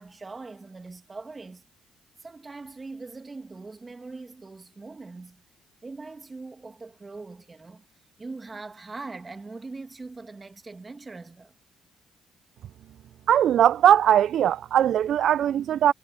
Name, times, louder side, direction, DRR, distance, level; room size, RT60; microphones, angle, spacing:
voice 1, 0.0-1.6 2.2-5.4 5.8-7.8 8.2-11.5, right 3 dB, 25° right, 2.1 m, -41 dB
voice 2, 13.3-15.9, right 10 dB, 70° right, 0.3 m, -20 dB
cardioid pair, 90°, 0 cm